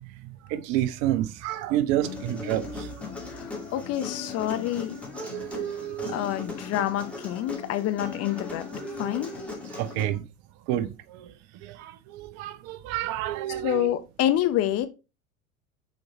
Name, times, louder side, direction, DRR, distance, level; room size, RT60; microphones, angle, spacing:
voice 1, 0.2-2.9 5.1-6.2 9.7-10.2 10.7-11.3 11.6-13.9, right 13 dB, 45° right, 0.7 m, -29 dB
Human voice, 2.0-10.0, left 3 dB, 5° left, 2.5 m, -38 dB
voice 2, 3.3-5.0 6.1-8.6 9.0-9.4 13.6-14.9, left 12 dB, 40° left, 0.9 m, -27 dB
6.3 x 4.3 x 4.3 m
figure-of-eight pair, 75°, 39 cm